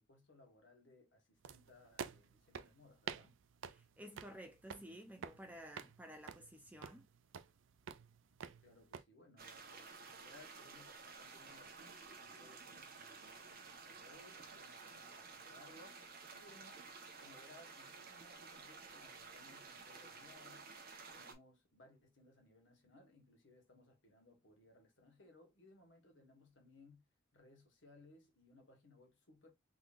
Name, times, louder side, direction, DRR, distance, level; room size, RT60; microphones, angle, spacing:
voice 1, 0.0-3.4 8.6-16.8 17.2-20.6 21.1-27.0 27.3-29.5, left 2 dB, 60° left, 1.6 m, -64 dB
sound 1, 1.4-9.0, right 7 dB, 65° right, 0.4 m, -51 dB
voice 2, 4.0-7.1, equal, 5° right, 0.6 m, -53 dB
sound 2, 9.4-21.3, right 4 dB, 45° right, 1.0 m, -54 dB
3.9 x 3.2 x 2.5 m
head